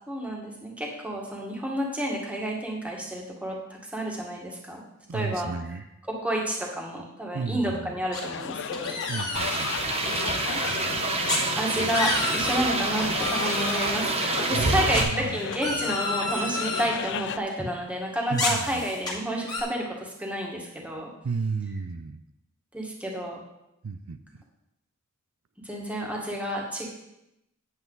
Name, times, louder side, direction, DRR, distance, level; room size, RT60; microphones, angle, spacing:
voice 1, 0.1-4.8 5.1-5.5 6.2-9.0 10.4-10.6 11.6-14.1 14.4-21.1 22.7-23.4 25.7-26.9, right 1 dB, 5° right, -2 dB, 1.8 m, -30 dB
voice 2, 5.1-5.8 7.3-8.0 9.1-9.7 11.8-11.9 14.5-15.4 18.3-18.9 21.2-22.2 23.8-24.4, right 5 dB, 80° right, 10 dB, 0.5 m, -33 dB
sound 1, 8.1-8.4 8.7-10.3 11.3-11.4 11.7-12.6 13.2-13.9 14.9-16.9 18.3-19.1 19.5-19.6, left 2 dB, 20° left, 2.1 m, -30 dB
sound 2, 8.2-17.4, left 7 dB, 60° left, 0.4 m, -34 dB
sound 3, 9.4-15.0, right 3 dB, 30° right, 1.0 m, -28 dB
9.3 x 8.2 x 4.0 m, 0.86 s
head